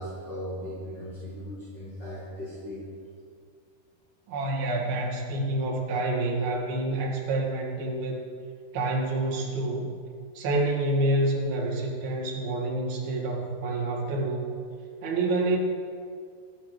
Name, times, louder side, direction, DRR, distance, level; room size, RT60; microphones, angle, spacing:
voice 1, 0.0-2.8, equal, 15° left, -10 dB, 3.3 m, -37 dB
voice 2, 4.3-8.2 8.7-9.9 10.4-14.5 15.0-15.6, right 2 dB, 60° right, -3 dB, 3.8 m, -28 dB
25.0 x 11.0 x 3.4 m, 2.2 s
omnidirectional pair, 5.1 m